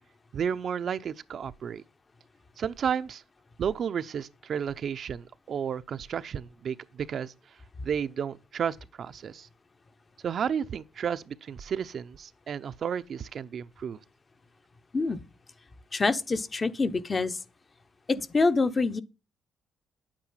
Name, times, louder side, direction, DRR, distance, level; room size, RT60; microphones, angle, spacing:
voice 1, 0.3-1.8 2.6-3.2 3.6-7.6 7.8-9.5 10.2-14.0, right 7 dB, 55° right, 0.7 m, -32 dB
voice 2, 15.9-17.4 18.1-19.0, left 3 dB, 30° left, 1.1 m, -26 dB
10.5 x 9.0 x 5.7 m
cardioid pair, 90°, 0 cm